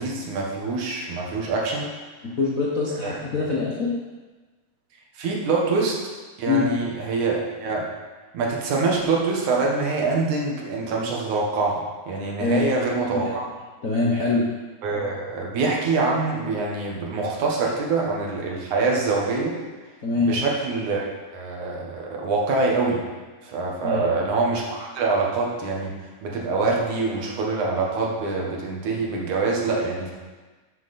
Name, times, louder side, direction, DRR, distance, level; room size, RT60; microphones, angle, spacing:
voice 1, 0.0-1.9 3.0-3.2 5.2-6.0 6.4-7.9 8.3-13.4 14.8-19.6 20.2-23.1 23.4-25.9 26.2-30.1, right 3 dB, 80° right, -2 dB, 3.1 m, -25 dB
voice 2, 2.2-4.0 6.5-6.7 12.4-12.6 13.1-13.3 13.8-14.5 20.0-20.4 23.8-24.0, left 4 dB, 55° left, -5 dB, 0.9 m, -23 dB
12.5 x 7.4 x 4.3 m, 1.3 s
omnidirectional pair, 3.4 m